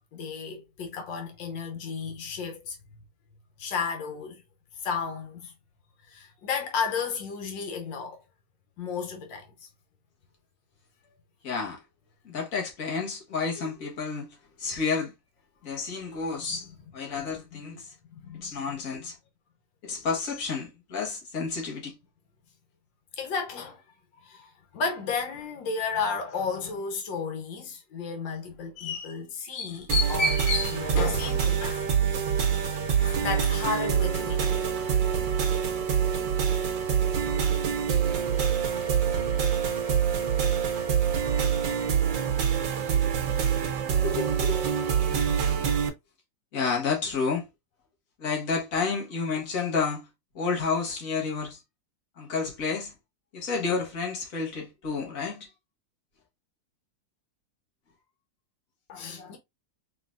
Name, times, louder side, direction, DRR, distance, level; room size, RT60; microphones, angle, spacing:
voice 1, 0.1-2.8 3.6-4.4 4.8-5.5 6.1-8.2 8.8-9.7 16.5-16.6 17.3-17.6 18.1-18.7 23.2-23.8 24.2-31.9 32.7-34.6 58.9-59.4, left 4 dB, 90° left, 1.8 m, -32 dB
voice 2, 11.4-11.8 12.3-15.1 15.6-16.7 16.9-17.9 18.4-19.2 19.8-22.0 43.6-43.8 44.0-44.6 46.5-47.5 48.2-50.1 50.4-51.6 52.2-52.9 53.3-55.5, left 5 dB, 50° left, 1.8 m, -30 dB
sound 1, 29.9-45.9, right 8 dB, 80° right, 1.6 m, -25 dB
4.4 x 3.7 x 2.5 m
omnidirectional pair, 2.0 m